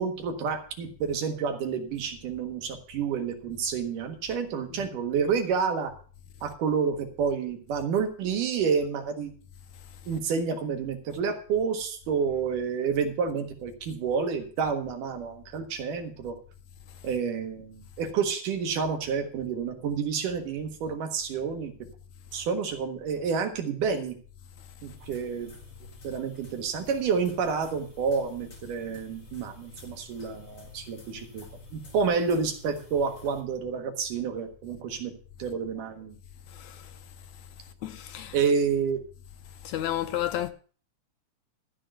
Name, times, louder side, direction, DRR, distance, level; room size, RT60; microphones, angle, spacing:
voice 1, 0.0-5.9 6.4-9.3 10.1-16.4 17.0-21.7 22.3-24.2 24.8-25.5 26.0-31.5 31.7-35.1 35.4-36.2 38.3-39.0, right 6 dB, 85° right, 3.2 m, -29 dB
sound 1, 24.9-33.4, left 2 dB, 40° left, 3.1 m, -50 dB
voice 2, 37.8-38.4 39.6-40.5, left 12 dB, 70° left, 2.1 m, -31 dB
13.5 x 4.6 x 8.8 m
omnidirectional pair, 3.6 m